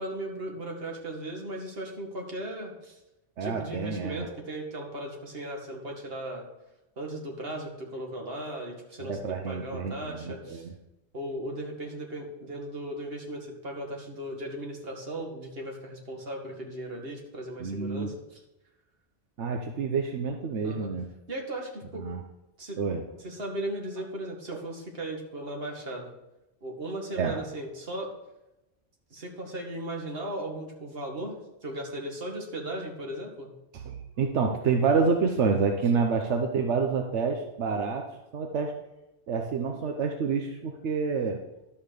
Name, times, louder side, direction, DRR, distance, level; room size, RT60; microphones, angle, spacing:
voice 1, 0.0-3.0 3.4-6.4 7.0-9.2 9.4-10.7 11.1-18.4 20.6-20.9 21.3-22.1 22.6-22.8 23.2-26.1 26.6-28.1 29.1-31.4 31.6-33.5, right 1 dB, 60° right, 1 dB, 2.1 m, -37 dB
voice 2, 3.4-4.3 9.0-10.7 17.6-18.1 19.4-21.1 21.9-22.2 22.8-23.0 24.5-24.6 27.2-27.4 33.7-38.1 38.3-38.7 39.3-41.4, right 5 dB, 85° right, 4 dB, 1.2 m, -28 dB
11.5 x 5.6 x 6.8 m, 0.95 s
omnidirectional pair, 1.1 m